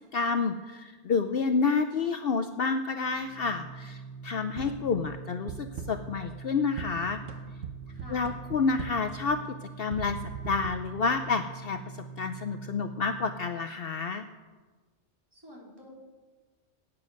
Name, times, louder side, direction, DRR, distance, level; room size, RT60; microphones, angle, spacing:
voice 1, 0.1-7.2 8.1-9.4 9.8-14.3, left 4 dB, 60° left, 9 dB, 0.8 m, -29 dB
Organ, 2.8-13.6, right 5 dB, 5° left, 4.3 m, -44 dB
sound 1, 4.6-5.0 5.5-6.2 6.8-9.2 9.9-10.7, right 7 dB, 70° right, 1.1 m, -40 dB
voice 2, 7.9-8.2 15.3-15.9, equal, 20° right, -4 dB, 3.9 m, -50 dB
16.5 x 9.2 x 6.4 m, 1.3 s
omnidirectional pair, 1.2 m